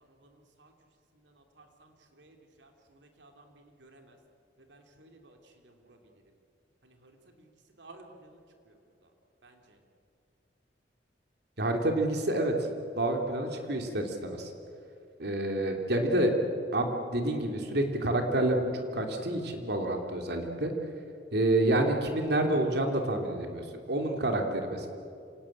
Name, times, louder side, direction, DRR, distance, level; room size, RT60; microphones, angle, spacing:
voice 1, 2.2-2.7 3.2-4.2 4.7-5.4 5.6-6.0 7.8-8.4 9.4-9.5, right 2 dB, 85° right, 3 dB, 2.9 m, -54 dB
voice 2, 11.6-12.5 13.0-14.5 15.2-16.3 16.7-20.7 21.3-24.9, right 1 dB, 65° right, 3 dB, 2.9 m, -28 dB
26.5 x 18.0 x 8.7 m, 2.6 s
head